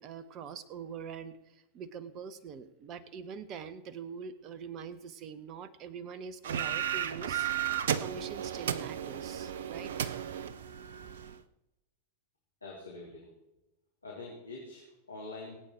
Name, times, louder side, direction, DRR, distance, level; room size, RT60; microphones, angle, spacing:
voice 1, 0.0-9.9, right 6 dB, 35° right, 14 dB, 1.2 m, -44 dB
sound 1, 6.4-11.4, right 9 dB, 60° right, 0.7 m, -34 dB
voice 2, 12.6-13.3 14.0-15.6, left 2 dB, 80° left, -4 dB, 3.4 m, -45 dB
23.0 x 8.8 x 4.5 m, 0.98 s
figure-of-eight pair, 90°, 0 cm